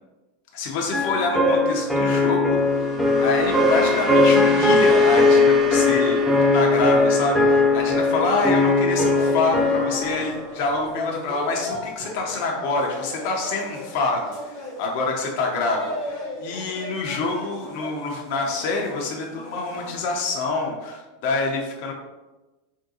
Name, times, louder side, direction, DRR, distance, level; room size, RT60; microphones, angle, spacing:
voice 1, 0.5-2.9 3.2-21.9, left 3 dB, 55° left, 0 dB, 0.5 m, -26 dB
sound 1, 0.9-10.4, left 3 dB, ahead, 0.6 m, -19 dB
sound 2, 2.5-10.9, right 2 dB, 30° right, 0.8 m, -33 dB
sound 3, 5.2-20.0, left 1 dB, 65° right, 1.3 m, -36 dB
3.5 x 2.2 x 2.7 m, 1.1 s
hypercardioid pair, 90°, 0 cm